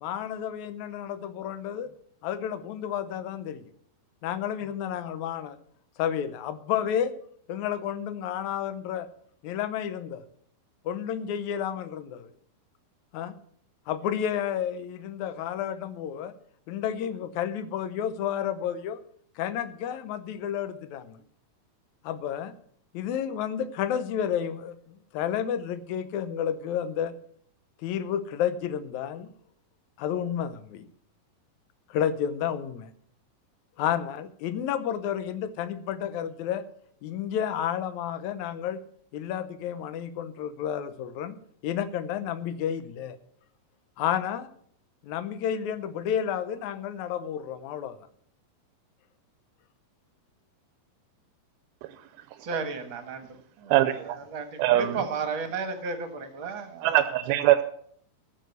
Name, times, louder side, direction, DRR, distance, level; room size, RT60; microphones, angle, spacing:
voice 1, 0.0-1.9 2.2-3.7 4.2-5.6 6.0-7.1 7.5-9.1 9.4-10.2 10.9-12.3 13.1-13.3 13.9-16.3 16.7-19.0 19.4-21.2 22.0-22.5 22.9-27.1 27.8-29.3 30.0-30.9 31.9-32.9 33.8-36.6 37.0-38.8 39.1-41.4 41.6-43.2 44.0-44.5 45.0-48.0, left 9 dB, 75° left, 13 dB, 1.8 m, -31 dB
voice 2, 52.4-53.3 53.6-53.8 54.3-56.9, right 4 dB, 55° right, 7 dB, 1.5 m, -33 dB
voice 3, 53.7-54.2 54.6-55.1 56.8-57.6, right 13 dB, 90° right, 9 dB, 2.6 m, -22 dB
14.0 x 6.6 x 8.1 m, 0.63 s
omnidirectional pair, 4.3 m